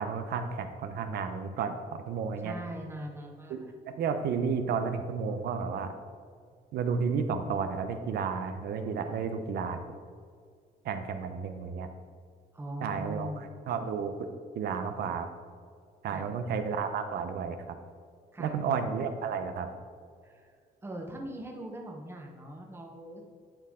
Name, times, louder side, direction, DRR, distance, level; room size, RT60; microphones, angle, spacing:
voice 1, 0.0-2.6 3.5-5.9 6.7-10.0 10.8-11.9 12.8-14.3 14.5-15.3 16.0-17.8 18.4-19.7, right 6 dB, 80° right, 8 dB, 0.8 m, -32 dB
voice 2, 2.4-3.7 12.5-13.4 13.7-13.9 16.1-16.3 18.3-18.6 20.2-20.5 20.8-23.2, right 1 dB, 15° right, 1 dB, 1.1 m, -41 dB
12.0 x 4.7 x 3.7 m, 2.1 s
cardioid pair, 175°, 16 cm